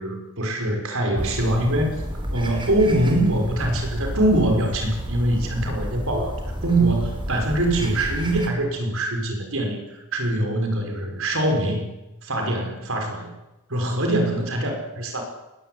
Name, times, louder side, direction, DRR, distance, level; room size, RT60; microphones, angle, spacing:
voice 1, 0.0-1.9 2.3-11.9 12.2-13.3 13.7-15.2, right 1 dB, 65° right, 4 dB, 6.2 m, -23 dB
sound 1, 1.2-8.5, equal, 20° right, 4.3 m, -31 dB
21.0 x 20.5 x 9.7 m, 0.99 s
head